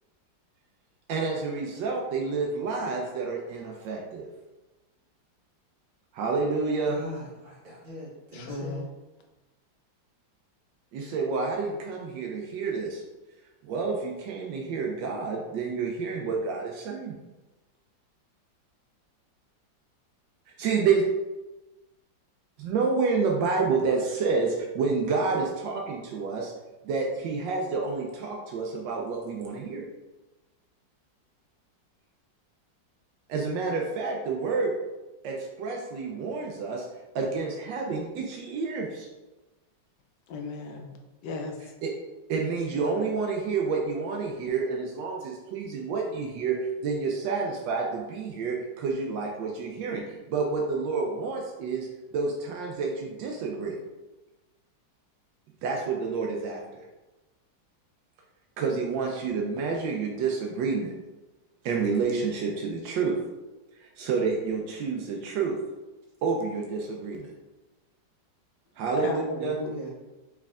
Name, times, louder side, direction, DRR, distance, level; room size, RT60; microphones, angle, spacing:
voice 1, 1.1-4.3 6.1-7.0 10.9-13.0 13.6-17.2 20.6-21.0 22.6-26.5 26.8-29.9 33.3-34.7 35.2-36.9 37.1-39.1 41.8-41.9 42.3-51.9 52.1-53.8 55.6-56.8 58.6-60.9 61.6-63.2 63.8-65.6 66.2-67.3 68.8-69.5, right 4 dB, 80° right, 0 dB, 1.3 m, -29 dB
voice 2, 6.9-8.8 69.3-69.9, equal, 40° right, -7 dB, 1.0 m, -40 dB
voice 3, 8.3-8.9 40.3-41.0 41.2-41.6 69.0-69.9, left 3 dB, 70° left, 3 dB, 1.2 m, -35 dB
4.5 x 4.3 x 2.4 m, 1.1 s
omnidirectional pair, 2.0 m